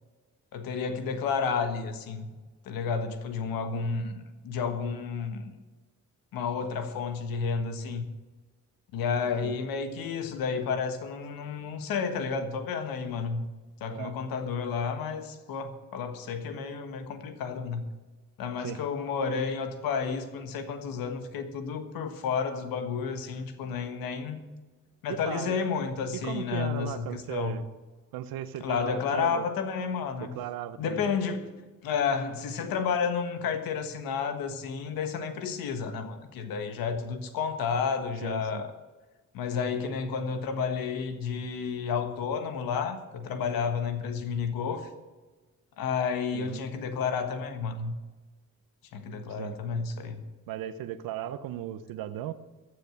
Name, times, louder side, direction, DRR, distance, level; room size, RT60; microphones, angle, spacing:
voice 1, 0.5-2.4 2.6-5.5 6.3-8.0 8.9-13.4 13.8-17.8 18.4-24.4 25.0-27.6 28.6-30.4 30.8-31.5 31.8-38.7 39.3-44.9 45.8-47.9 48.9-50.2, left 6 dB, 85° left, 8 dB, 1.5 m, -31 dB
voice 2, 9.2-9.6 13.9-14.1 18.6-18.9 25.1-25.6 26.2-27.7 28.1-29.5 30.2-31.1 38.2-38.6 46.3-46.6 49.4-49.6 50.5-52.3, right 12 dB, 90° right, 14 dB, 0.8 m, -37 dB
14.5 x 6.6 x 8.8 m, 1.3 s
supercardioid pair, 60°, 34 cm